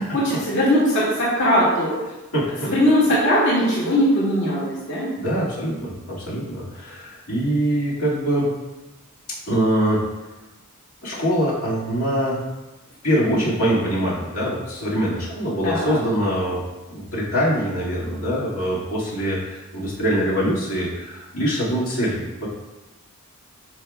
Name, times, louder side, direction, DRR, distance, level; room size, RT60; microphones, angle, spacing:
voice 1, 0.1-1.9 2.6-5.1 15.6-16.0, equal, 55° left, -8 dB, 2.0 m, -19 dB
voice 2, 2.3-2.7 5.2-8.5 9.3-10.0 11.0-12.4 13.0-16.6 16.9-22.5, equal, 70° left, -8 dB, 2.2 m, -23 dB
10.0 x 5.1 x 2.3 m, 1.1 s
head